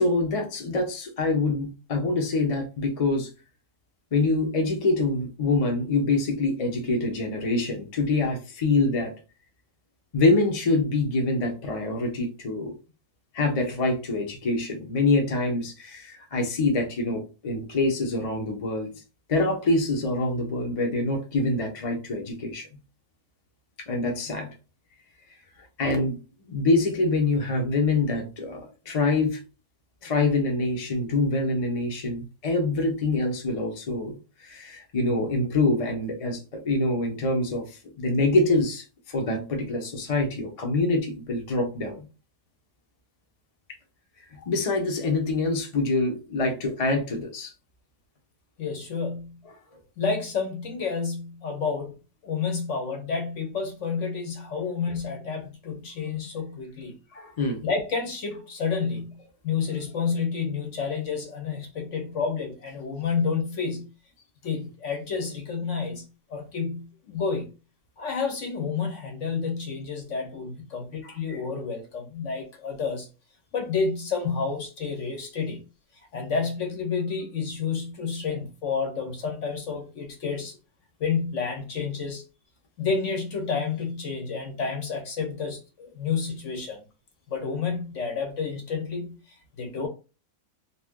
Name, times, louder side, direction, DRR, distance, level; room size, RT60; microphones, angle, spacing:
voice 1, 0.0-3.3 4.1-9.1 10.1-12.7 13.3-18.9 19.3-22.7 23.9-24.5 25.8-26.2 26.5-29.4 30.0-42.0 44.3-47.5 57.1-57.6 71.0-71.1, left 2 dB, 35° left, 0.6 m, -25 dB
voice 2, 48.6-49.4 50.0-52.0 52.2-57.0 57.6-63.9 64.4-67.5 68.0-73.1 73.5-75.7 76.1-80.6 81.0-82.2 82.8-86.8 87.3-89.9, left 5 dB, 60° left, 1.0 m, -30 dB
2.7 x 2.5 x 3.6 m
omnidirectional pair, 1.6 m